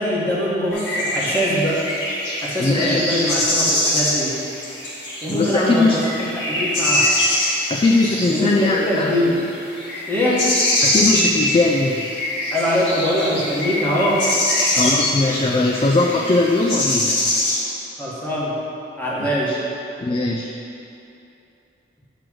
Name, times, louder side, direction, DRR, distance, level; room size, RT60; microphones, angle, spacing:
voice 1, 0.0-1.8 2.4-4.4 5.2-7.1 8.3-9.4 10.1-10.5 12.5-14.2 18.0-18.5 19.0-19.6, equal, 10° left, -7 dB, 1.4 m, -22 dB
sound 1, 0.7-17.6, left 1 dB, 70° left, 1.7 m, -23 dB
voice 2, 2.6-3.3 5.3-6.0 7.7-9.1 10.8-12.1 14.7-17.3 19.2-19.6 20.0-20.5, left 2 dB, 30° left, 0 dB, 0.3 m, -20 dB
7.7 x 3.3 x 6.0 m, 2.8 s
head